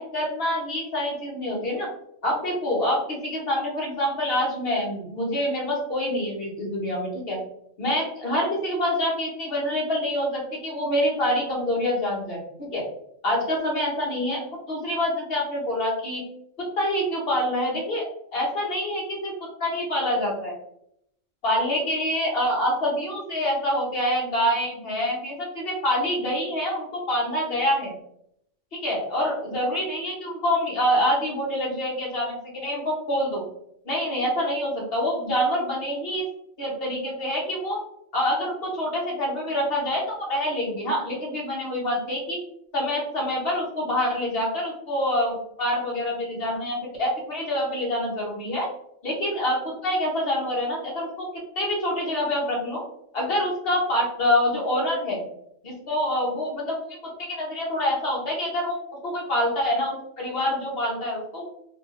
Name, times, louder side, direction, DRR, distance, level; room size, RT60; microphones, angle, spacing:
voice 1, 0.0-1.9 2.2-7.4 7.8-12.8 13.2-16.2 16.6-18.1 18.3-19.3 19.6-20.6 21.4-28.0 28.7-33.4 33.8-36.2 36.6-37.8 38.1-42.4 42.7-48.7 49.0-51.3 51.5-52.8 53.1-55.2 55.6-56.7 57.2-58.8 59.0-61.5, left 1 dB, 50° left, -3 dB, 1.2 m, -26 dB
3.3 x 2.3 x 3.0 m, 0.73 s
omnidirectional pair, 1.3 m